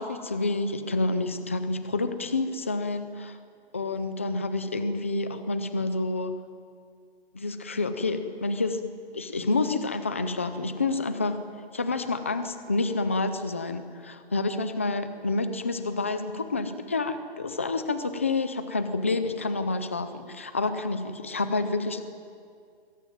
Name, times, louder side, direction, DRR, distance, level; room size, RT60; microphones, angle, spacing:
voice 1, 0.0-3.4 3.7-6.3 7.3-8.8 9.1-11.4 11.7-22.0, left 3 dB, 15° left, 10 dB, 0.5 m, -28 dB
23.0 x 22.0 x 9.2 m, 2.2 s
hypercardioid pair, 175°, 32 cm